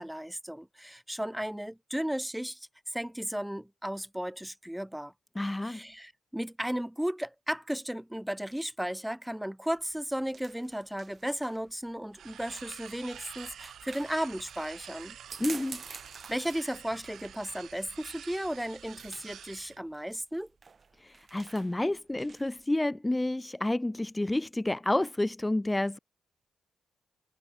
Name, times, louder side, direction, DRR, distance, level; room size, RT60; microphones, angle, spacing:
voice 1, 0.0-5.1 5.6-15.2 16.3-20.5, equal, 5° right, 6.3 m, -35 dB
voice 2, 5.4-5.8 15.4-15.8 21.0-26.0, left 1 dB, 15° left, 3.7 m, -30 dB
sound 1, 9.7-22.6, right 5 dB, 45° right, 5.9 m, -50 dB
sound 2, 12.1-19.8, right 9 dB, 75° right, 5.8 m, -48 dB
supercardioid pair, 50°, 0 cm